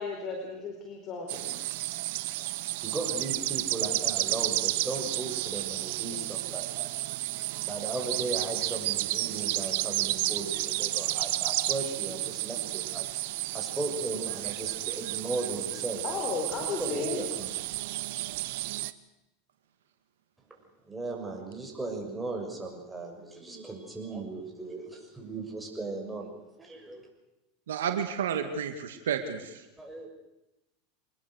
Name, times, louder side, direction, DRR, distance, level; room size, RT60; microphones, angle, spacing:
voice 1, 0.0-1.6 16.0-17.2, left 4 dB, 40° left, 2 dB, 4.5 m, -34 dB
sound 1, 1.3-18.9, right 18 dB, 70° right, 1.0 m, -32 dB
voice 2, 2.8-6.9 7.7-13.1 13.5-16.0 16.6-17.5 20.5-20.6 20.9-26.3 26.6-27.1 29.8-30.1, right 2 dB, 10° right, 1 dB, 6.7 m, -37 dB
voice 3, 27.7-29.6, right 7 dB, 85° right, 7 dB, 2.1 m, -31 dB
24.5 x 20.5 x 6.6 m, 0.93 s
hypercardioid pair, 100°, 0 cm